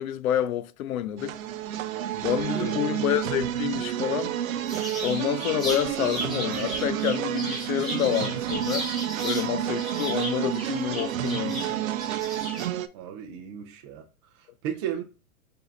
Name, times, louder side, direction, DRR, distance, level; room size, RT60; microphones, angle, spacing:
voice 1, 0.0-1.4 2.2-4.3 5.0-8.9 9.2-11.8, left 11 dB, 80° left, 0.6 m, -28 dB
sound 1, 1.2-12.9, right 11 dB, 70° right, 0.6 m, -30 dB
voice 2, 2.1-2.9 12.9-14.1 14.6-15.0, right 9 dB, 25° right, 0.4 m, -35 dB
sound 2, 4.7-9.5 9.8-12.6, equal, ahead, 1.0 m, -35 dB
4.8 x 2.7 x 3.1 m
hypercardioid pair, 140°, 42 cm